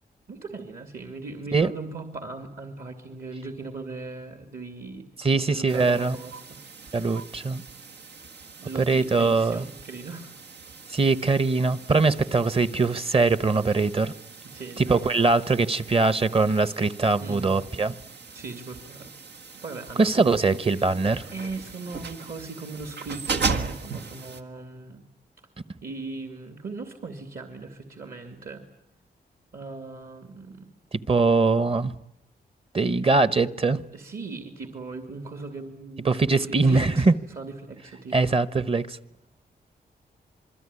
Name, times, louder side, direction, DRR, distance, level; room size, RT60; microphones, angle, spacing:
voice 1, 0.3-5.1 5.3-6.6 8.6-10.3 14.4-15.3 17.2-17.5 18.3-19.1 19.6-20.3 20.7-20.9 21.3-25.0 25.8-28.6 29.5-30.7 33.9-38.3, right 3 dB, 60° right, 2.7 m, -38 dB
voice 2, 5.2-6.2 6.9-7.6 8.9-9.6 10.9-14.1 14.8-17.9 20.0-21.2 31.1-31.9 32.7-33.8 36.0-37.1 38.1-39.0, right 3 dB, 35° right, 1.0 m, -22 dB
sound 1, 5.7-24.4, right 4 dB, 90° right, 1.7 m, -38 dB
27.0 x 21.5 x 9.8 m
wide cardioid pair, 100°, 17 cm